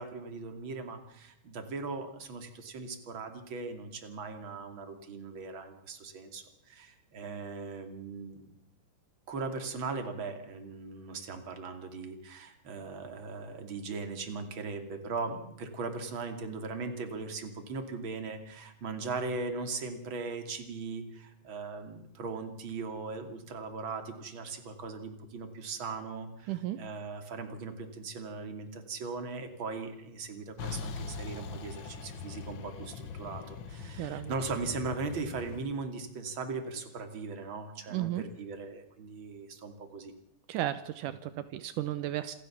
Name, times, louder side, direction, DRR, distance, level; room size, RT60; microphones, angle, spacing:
voice 1, 0.0-8.5 9.3-40.1, right 4 dB, 40° right, 6 dB, 3.1 m, -39 dB
voice 2, 26.5-26.8 34.0-34.3 37.9-38.2 40.5-42.3, right 14 dB, 80° right, 12 dB, 2.4 m, -34 dB
Truck, 30.6-35.6, left 5 dB, 60° left, 1.4 m, -41 dB
27.5 x 13.5 x 7.2 m, 0.78 s
omnidirectional pair, 3.7 m